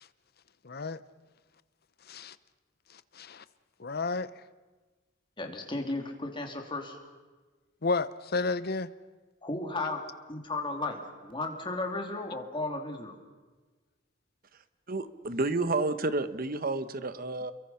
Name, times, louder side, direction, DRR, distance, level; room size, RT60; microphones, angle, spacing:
voice 1, 0.6-1.0 2.1-2.3 3.2-3.4 3.8-4.3 7.8-8.9, left 3 dB, 55° left, 15 dB, 0.9 m, -31 dB
voice 2, 5.4-7.0 9.4-10.0 10.3-13.1, left 2 dB, 25° left, 3 dB, 3.1 m, -34 dB
voice 3, 14.9-17.5, right 2 dB, 50° right, 12 dB, 1.2 m, -30 dB
30.0 x 23.0 x 5.8 m, 1.3 s
head